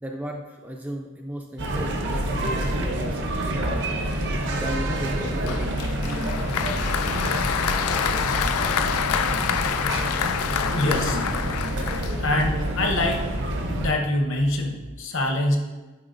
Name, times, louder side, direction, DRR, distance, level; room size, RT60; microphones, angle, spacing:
voice 1, 0.0-3.9 4.6-6.4, right 1 dB, 5° right, 1 dB, 0.3 m, -36 dB
sound 1, 1.6-13.9, right 1 dB, 55° right, 0.7 m, -27 dB
Applause, 5.5-12.6, left 8 dB, 75° left, 0.3 m, -27 dB
voice 2, 10.7-11.2 12.2-13.2 13.8-15.6, left 1 dB, 55° left, 3 dB, 0.8 m, -24 dB
8.4 x 4.8 x 2.6 m, 1.2 s
head